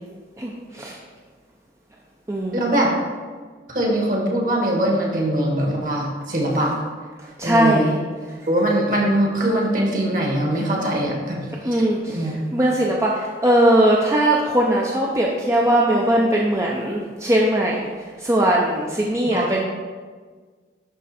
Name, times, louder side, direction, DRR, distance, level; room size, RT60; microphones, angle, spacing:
voice 1, 0.4-0.9 2.3-2.6 7.4-8.0 11.6-17.8 18.2-19.6, right 1 dB, 15° right, -3 dB, 0.6 m, -20 dB
voice 2, 2.5-2.9 3.7-6.7 7.4-7.9 8.5-11.4 11.6-12.3 19.3-19.6, right 1 dB, 50° right, -1 dB, 1.6 m, -22 dB
11.0 x 3.7 x 4.2 m, 1.5 s
head